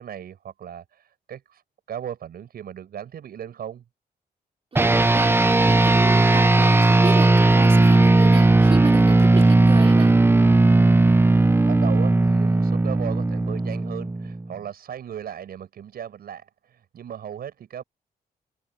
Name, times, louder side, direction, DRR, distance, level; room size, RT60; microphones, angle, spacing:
voice 1, 0.0-1.6 1.9-3.8 11.7-17.8, right 9 dB, 80° right, 6.9 m, -37 dB
voice 2, 4.7-10.1, right 4 dB, 35° right, 4.8 m, -33 dB
sound 1, 4.8-14.5, right 2 dB, 15° right, 0.9 m, -17 dB
cardioid pair, 110°, 16 cm